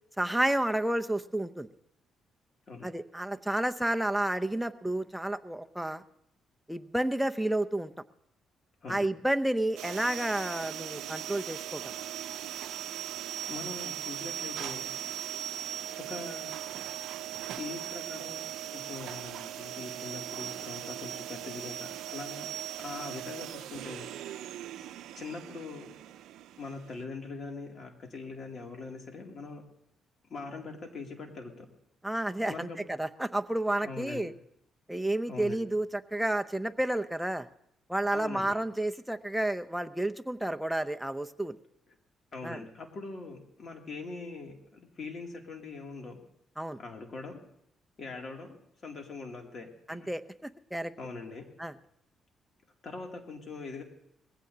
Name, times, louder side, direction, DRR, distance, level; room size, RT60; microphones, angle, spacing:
voice 1, 0.2-1.7 2.8-6.0 6.7-7.9 8.9-11.9 32.0-34.3 34.9-37.5 37.9-41.6 42.4-42.6 46.6-46.8 49.9-50.9 51.6-51.7, right 1 dB, 5° right, 9 dB, 0.7 m, -31 dB
voice 2, 8.8-9.1 13.5-15.0 16.0-16.6 17.5-18.4 18.7-22.5 22.8-24.1 25.1-25.9 26.6-29.6 30.3-31.7 32.5-32.8 33.8-34.3 35.3-35.6 38.1-38.6 42.3-46.2 46.8-47.4 48.0-50.1 51.0-51.4 52.8-53.8, left 3 dB, 50° left, 2 dB, 2.7 m, -42 dB
sound 1, 9.8-27.0, right 11 dB, 85° right, 0.5 m, -39 dB
21.0 x 16.0 x 2.8 m, 0.76 s
cardioid pair, 90°, 0 cm